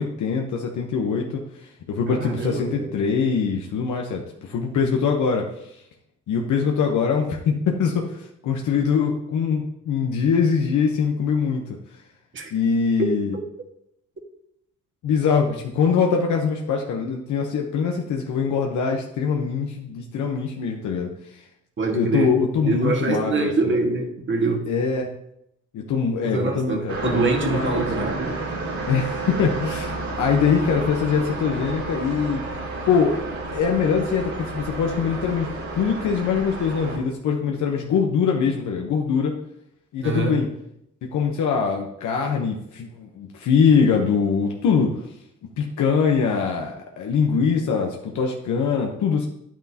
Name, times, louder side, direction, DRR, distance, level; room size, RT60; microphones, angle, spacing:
voice 1, 0.0-1.4 1.9-5.8 6.3-11.6 12.5-13.3 15.0-21.4 21.9-23.5 24.7-25.1 25.7-28.1 28.9-32.4 32.9-33.1 33.5-39.3 39.9-40.5 41.1-45.0 45.6-49.3, left 6 dB, 75° left, 1 dB, 1.1 m, -23 dB
voice 2, 2.1-2.9 12.3-12.5 13.0-13.4 21.8-22.3 22.6-24.7 26.2-28.5 40.0-40.4, right 3 dB, 40° right, 2 dB, 1.8 m, -25 dB
sound 1, 26.9-37.0, right 3 dB, 70° right, 3.6 m, -31 dB
9.3 x 9.0 x 2.9 m, 0.79 s
cardioid pair, 90°, 30 cm